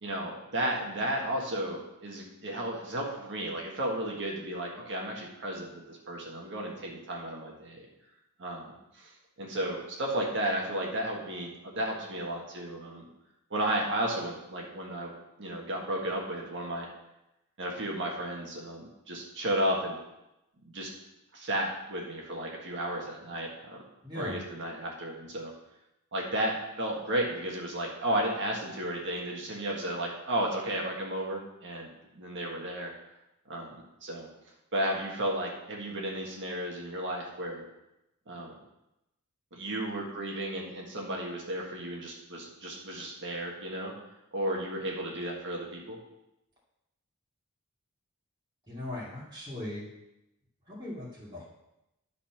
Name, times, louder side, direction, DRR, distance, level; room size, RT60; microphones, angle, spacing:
voice 1, 0.0-7.8 8.4-9.1 9.4-13.0 13.5-15.1 15.4-16.9 17.6-20.0 20.6-20.9 21.3-23.8 24.1-25.5 26.1-31.9 32.1-32.9 33.5-33.7 34.0-34.3 34.7-37.6 38.3-38.5 39.5-43.9 44.3-46.0, right 1 dB, 55° right, -1 dB, 1.6 m, -33 dB
voice 2, 24.0-24.4 48.7-49.9 50.7-51.4, left 1 dB, 20° right, -8 dB, 2.6 m, -39 dB
11.5 x 4.2 x 6.0 m, 0.90 s
head